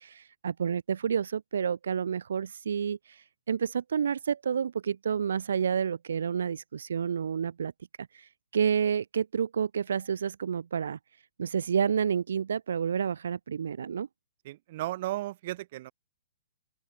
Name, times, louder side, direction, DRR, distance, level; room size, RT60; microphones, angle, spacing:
voice 1, 0.0-7.7 8.0-11.0 11.4-14.1, right 7 dB, 65° right, 3.3 m, -29 dB
voice 2, 14.4-15.9, right 16 dB, 30° right, 5.1 m, -35 dB
open air
hypercardioid pair, 175°, 0 cm